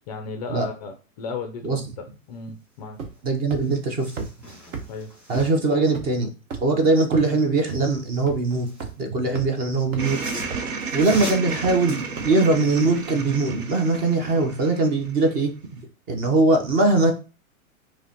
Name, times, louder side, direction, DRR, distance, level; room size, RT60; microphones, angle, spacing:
voice 1, 0.1-3.0 4.9-5.1, left 4 dB, 30° left, 6 dB, 0.4 m, -35 dB
sound 1, 3.0-3.2 3.5-3.6 4.2-4.3 4.7-4.8 5.3-5.4 5.9-6.0 6.5-6.7 7.1-7.2 7.7-7.8 8.3-8.4 8.8-8.9 9.3-9.5 9.9-10.0 10.5-10.7 11.1-11.2 11.6-11.7 12.2-12.3, right 5 dB, 60° right, 1.2 m, -32 dB
sound 2, 3.1-3.2 3.5-5.8 7.9-9.0 9.8-13.1 13.5-13.6, equal, 5° right, 1.6 m, -41 dB
voice 2, 3.2-4.3 5.3-6.3 6.6-8.7 9.0-10.2 10.9-15.5 16.1-17.1, right 3 dB, 20° right, 5 dB, 0.6 m, -21 dB
sound 3, 10.0-15.4, right 4 dB, 80° right, 0.9 m, -33 dB
4.8 x 2.2 x 2.8 m, 0.33 s
hypercardioid pair, 125°, 43 cm